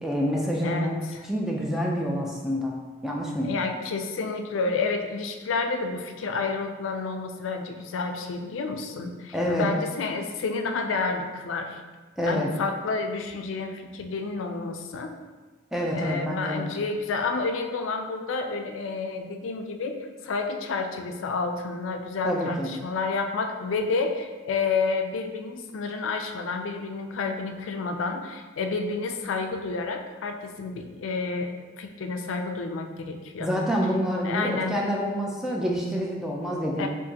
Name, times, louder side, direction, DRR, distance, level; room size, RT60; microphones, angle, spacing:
voice 1, 0.0-0.9 1.2-2.8 3.0-3.5 9.3-9.7 12.2-12.5 15.7-16.7 22.2-22.7 33.4-36.9, equal, ahead, -2 dB, 0.4 m, -27 dB
voice 2, 0.6-1.2 3.4-11.8 12.2-15.1 15.9-31.5 31.8-33.5 34.2-34.8 36.8-36.9, left 4 dB, 85° left, 5 dB, 0.4 m, -30 dB
4.8 x 2.6 x 2.8 m, 1.3 s
head